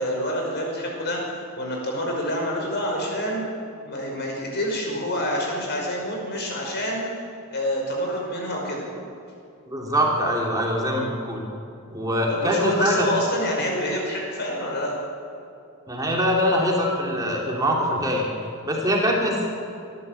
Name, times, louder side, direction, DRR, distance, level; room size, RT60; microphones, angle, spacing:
voice 1, 0.0-3.4 3.9-7.2 7.5-8.9 12.3-14.9, equal, 50° left, 0 dB, 5.5 m, -27 dB
voice 2, 9.7-11.4 11.9-13.1 15.9-18.3 18.6-19.5, equal, 15° right, -1 dB, 2.8 m, -23 dB
26.0 x 12.5 x 8.3 m, 2.5 s
head